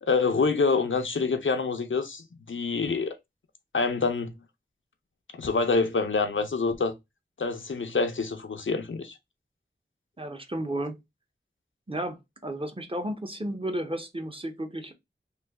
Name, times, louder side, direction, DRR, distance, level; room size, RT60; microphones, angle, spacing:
voice 1, 0.0-3.2 3.7-4.3 5.3-6.9 7.4-9.1, left 4 dB, 85° left, 0.5 m, -26 dB
voice 2, 10.2-11.0 11.9-14.9, right 1 dB, 30° right, 0.7 m, -33 dB
3.2 x 2.2 x 3.4 m
wide cardioid pair, 40°, 20 cm